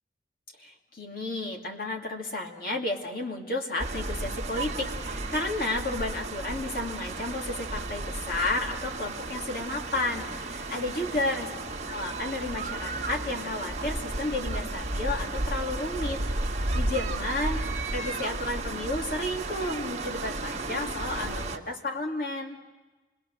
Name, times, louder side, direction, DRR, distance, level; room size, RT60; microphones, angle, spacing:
voice 1, 0.6-11.5 11.9-17.6 17.9-22.6, left 2 dB, 55° left, 0 dB, 2.6 m, -32 dB
sound 1, 3.8-21.6, right 2 dB, 40° right, 1.6 m, -33 dB
28.0 x 20.5 x 6.5 m, 1.2 s
head